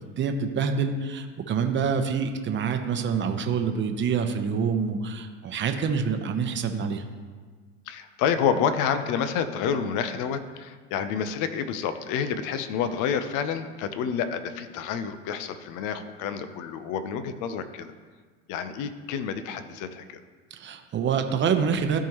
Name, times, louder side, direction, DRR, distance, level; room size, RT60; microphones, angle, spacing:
voice 1, 0.2-7.0 20.5-22.0, right 6 dB, 30° right, 6 dB, 0.9 m, -26 dB
voice 2, 7.9-17.9 18.5-20.2, left 7 dB, 55° left, 10 dB, 0.8 m, -29 dB
14.0 x 4.6 x 3.1 m, 1.5 s
hypercardioid pair, 80°, 38 cm